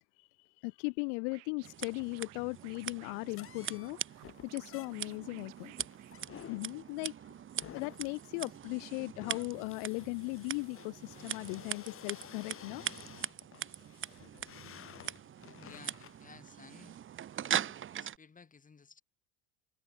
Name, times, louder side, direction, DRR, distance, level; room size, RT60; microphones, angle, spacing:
voice 1, 0.2-4.0 4.5-5.7 6.5-7.1 7.7-12.8, left 40 dB or more, 80° left, 1.5 m, -38 dB
Scratching (performance technique), 1.3-6.8, right 27 dB, 70° right, 2.9 m, -58 dB
Scissors, 1.6-18.2, right 10 dB, 35° right, 1.7 m, -42 dB
sound 1, 3.3-16.2, left 10 dB, 40° left, 2.9 m, -53 dB
voice 2, 15.5-17.0 17.4-19.0, left 5 dB, 25° left, 7.9 m, -56 dB
supercardioid pair, 110°, 34 cm